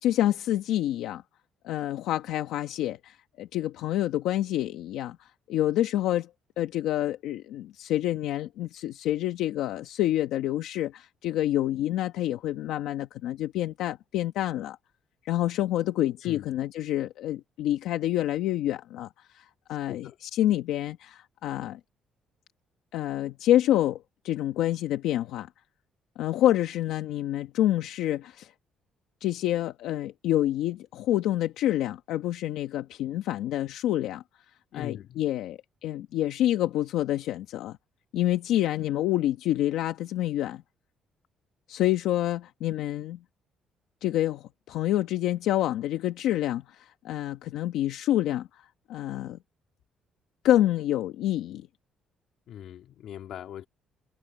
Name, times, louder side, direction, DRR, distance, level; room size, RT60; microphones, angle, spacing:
voice 1, 0.0-1.2 1.6-6.3 6.6-14.8 15.2-21.8 22.9-25.5 26.2-28.5 29.2-34.2 34.7-37.8 38.1-40.6 41.7-43.2 44.0-49.4 50.4-51.7, left 13 dB, 85° left, 1.3 m, -27 dB
voice 2, 34.7-35.2 52.5-53.7, left 10 dB, 65° left, 3.1 m, -40 dB
cardioid pair, 135°, 0 cm